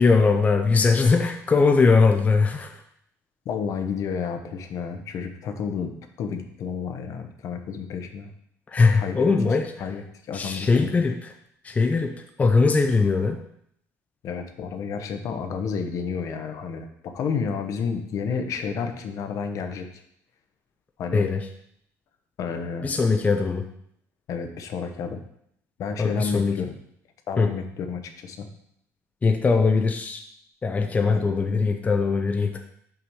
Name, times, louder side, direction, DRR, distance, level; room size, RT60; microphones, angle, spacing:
voice 1, 0.0-2.8 8.7-9.9 10.3-11.3 11.6-13.4 21.1-21.5 22.8-23.6 26.0-26.6 27.4-27.5 29.2-30.2 30.6-32.6, left 4 dB, 25° left, 4 dB, 0.6 m, -21 dB
voice 2, 3.4-8.3 8.9-9.3 9.8-11.0 14.2-19.9 21.0-21.3 22.4-22.9 24.3-25.2 25.8-26.7 27.3-28.5 31.1-31.2, left 6 dB, 60° left, 6 dB, 0.9 m, -31 dB
5.8 x 5.0 x 5.5 m, 0.71 s
cardioid pair, 125°, 6 cm